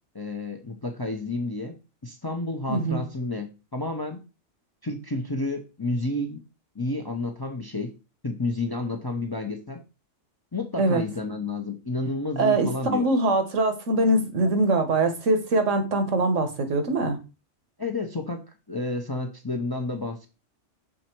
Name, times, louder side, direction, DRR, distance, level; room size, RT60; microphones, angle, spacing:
voice 1, 0.1-1.7 2.0-4.2 4.8-6.4 6.7-7.9 8.2-9.8 10.5-13.1 17.8-20.3, left 2 dB, 25° left, 5 dB, 0.6 m, -30 dB
voice 2, 2.7-3.0 10.8-11.0 12.4-17.2, right 2 dB, 75° right, 7 dB, 1.5 m, -23 dB
6.5 x 4.2 x 4.4 m, 0.30 s
omnidirectional pair, 1.3 m